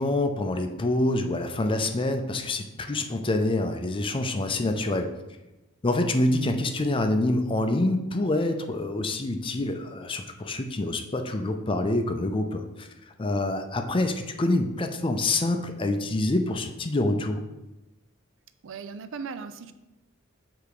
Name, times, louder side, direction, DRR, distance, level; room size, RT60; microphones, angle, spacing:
voice 1, 0.0-5.1 5.8-12.9 13.2-17.4, left 2 dB, 25° left, 6 dB, 0.5 m, -26 dB
voice 2, 18.6-19.7, right 5 dB, 65° right, 10 dB, 0.4 m, -37 dB
6.8 x 3.4 x 4.9 m, 0.99 s
head